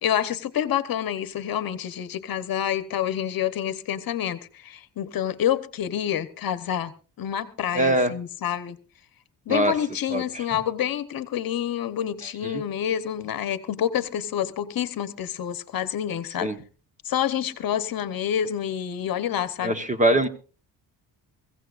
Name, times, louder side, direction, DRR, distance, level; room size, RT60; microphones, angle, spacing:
voice 1, 0.0-6.9 7.2-8.8 9.5-16.5 17.0-19.8, left 10 dB, 60° left, 1.0 m, -28 dB
voice 2, 7.7-8.1 9.5-9.7 10.1-10.4 12.5-12.6 16.4-16.6 19.6-20.3, right 1 dB, 20° right, 1.1 m, -22 dB
23.0 x 16.0 x 2.5 m
wide cardioid pair, 155°, 40 cm